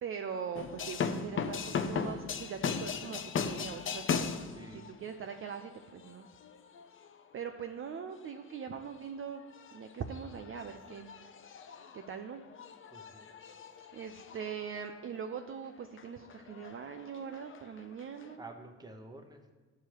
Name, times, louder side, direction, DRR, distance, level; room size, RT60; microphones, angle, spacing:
voice 1, 0.0-4.7 5.0-6.3 7.3-9.4 9.7-11.1 11.9-12.4 13.9-18.4, right 7 dB, 45° right, 6 dB, 0.5 m, -41 dB
sound 1, 0.5-7.3 8.1-8.7 9.0-9.2 9.5-15.5 15.8-18.3, left 6 dB, 45° left, 0.6 m, -39 dB
voice 2, 4.5-4.9 12.9-13.2 18.4-19.5, right 2 dB, 15° right, 4 dB, 0.9 m, -49 dB
11.5 x 4.8 x 3.0 m, 1.4 s
cardioid pair, 90°, 30 cm